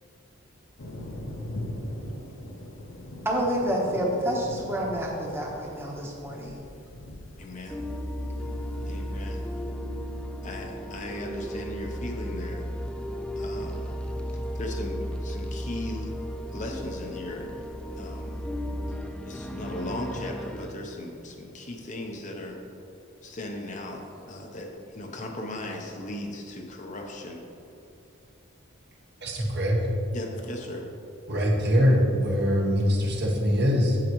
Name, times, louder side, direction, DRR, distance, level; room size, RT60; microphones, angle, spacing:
Thunder, 0.8-9.5, left 1 dB, 65° left, 0.9 m, -41 dB
voice 1, 3.2-6.5, equal, 10° right, -2 dB, 1.1 m, -28 dB
voice 2, 7.4-7.8 8.9-9.5 10.4-12.7 13.4-13.9 14.5-16.1 16.5-17.6 17.9-18.4 18.9-19.0 19.2-22.6 23.2-27.4 30.1-30.9, left 1 dB, 35° left, 2 dB, 0.7 m, -37 dB
sound 1, 7.7-20.7, equal, 5° left, 0.3 m, -34 dB
voice 3, 29.2-29.8 31.3-34.0, equal, 55° right, -1 dB, 1.2 m, -23 dB
8.6 x 7.7 x 3.1 m, 2.8 s
head